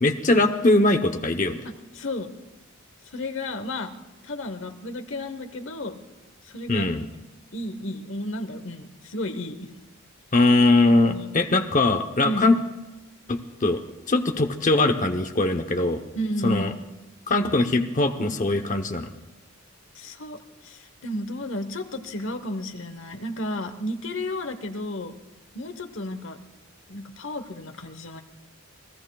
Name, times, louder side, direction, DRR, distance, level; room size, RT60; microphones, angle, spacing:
voice 1, 0.0-1.7 6.7-7.1 10.3-12.6 13.3-13.8 14.1-16.0 16.4-16.7 17.3-19.1, left 2 dB, 35° left, 5 dB, 0.8 m, -21 dB
voice 2, 1.6-2.3 3.1-3.9 4.2-6.0 6.4-6.9 7.5-9.7 11.1-11.3 12.2-12.5 16.1-16.8 19.9-25.2 25.5-26.4 26.9-28.2, left 1 dB, 65° left, 8 dB, 1.1 m, -32 dB
28.5 x 17.5 x 2.4 m, 1.0 s
head